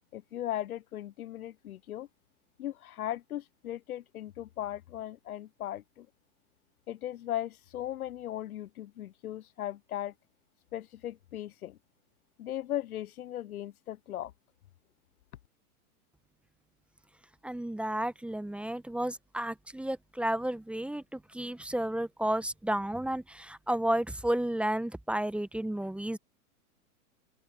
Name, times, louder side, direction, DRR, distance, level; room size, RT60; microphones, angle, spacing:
voice 1, 0.1-2.1 2.6-6.1 6.9-10.1 10.7-11.8 12.4-14.3, left 12 dB, 70° left, 0.8 m, -37 dB
voice 2, 17.4-26.2, right 1 dB, 5° right, 1.1 m, -32 dB
open air
hypercardioid pair, 110°, 45 cm